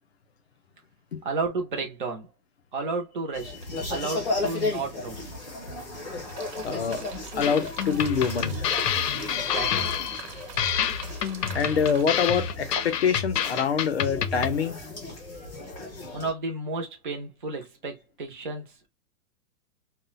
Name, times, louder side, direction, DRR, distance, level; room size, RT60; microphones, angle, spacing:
voice 1, 1.2-2.3 2.7-3.6 3.9-5.2 9.4-9.9 16.1-18.9, right 3 dB, 35° right, 0.5 m, -32 dB
sound 1, 3.3-16.3, left 2 dB, 15° left, 0.8 m, -35 dB
voice 2, 3.7-4.1 6.6-7.0 7.3-8.6 11.2-14.8, left 6 dB, 45° left, 0.4 m, -26 dB
sound 2, 6.3-12.1, right 6 dB, 75° right, 1.0 m, -44 dB
sound 3, 7.4-14.6, left 8 dB, 85° left, 0.6 m, -28 dB
2.1 x 2.1 x 3.7 m
hypercardioid pair, 175°, 47 cm